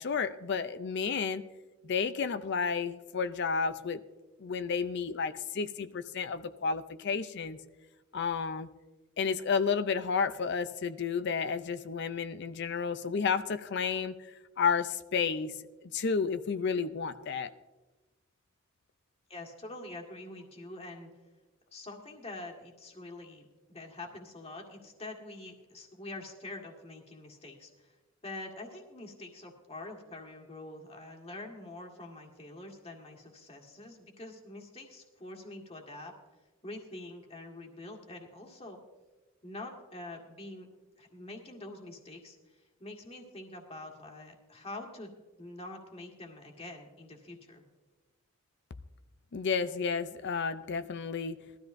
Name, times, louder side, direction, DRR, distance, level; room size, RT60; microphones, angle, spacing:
voice 1, 0.0-1.4 1.8-4.0 4.4-7.6 8.1-8.7 9.2-14.2 14.6-15.5 15.9-17.5 49.3-51.4, left 5 dB, 50° left, 12 dB, 0.4 m, -31 dB
voice 2, 19.3-21.1 21.7-27.9 28.2-36.1 36.6-38.8 39.4-40.7 41.0-45.1 45.4-47.6, left 2 dB, 25° left, 1 dB, 1.7 m, -45 dB
20.0 x 13.0 x 2.6 m, 1.2 s
head